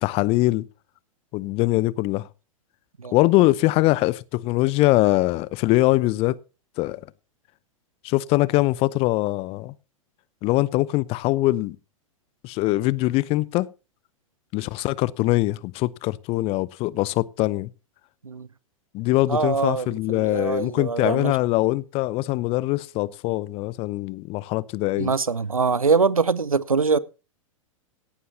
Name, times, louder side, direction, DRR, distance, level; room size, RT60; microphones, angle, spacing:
voice 1, 0.0-0.7 1.3-2.3 3.1-6.4 6.8-7.0 8.0-9.7 10.4-11.8 12.4-13.7 14.5-17.7 18.9-25.1, left 19 dB, 35° left, 0.7 m, -22 dB
voice 2, 19.3-21.3 25.0-27.0, right 5 dB, 85° right, 0.7 m, -23 dB
17.5 x 11.0 x 2.9 m
figure-of-eight pair, 100°, 17 cm